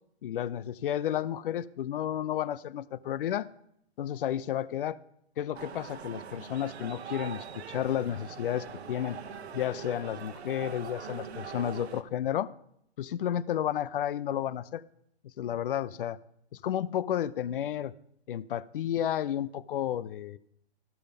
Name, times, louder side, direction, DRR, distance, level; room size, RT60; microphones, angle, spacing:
voice 1, 0.2-3.5 4.0-5.0 5.4-9.2 9.5-12.5 13.0-14.8 15.4-16.2 16.6-17.9 18.3-20.4, left 10 dB, 55° left, 18 dB, 0.5 m, -32 dB
sound 1, 5.5-12.0, right 7 dB, 75° right, 1.1 m, -42 dB
13.5 x 6.9 x 5.2 m, 0.71 s
hypercardioid pair, 150°, 33 cm